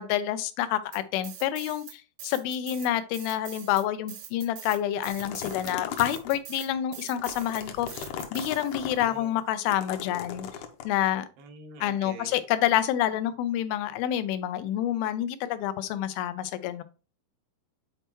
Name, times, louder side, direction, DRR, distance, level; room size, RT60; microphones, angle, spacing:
voice 1, 0.0-8.0 8.3-10.5 10.8-11.3 11.8-16.8, left 11 dB, 90° left, 2.5 m, -28 dB
sound 1, 0.9-1.9 2.2-9.0, right 10 dB, 70° right, 1.9 m, -44 dB
sound 2, 5.0-6.4 7.0-9.0 9.7-10.8, left 8 dB, 75° left, 1.9 m, -37 dB
voice 2, 9.0-9.3 11.4-12.4, right 4 dB, 90° right, 3.0 m, -45 dB
7.8 x 4.4 x 3.0 m
omnidirectional pair, 4.2 m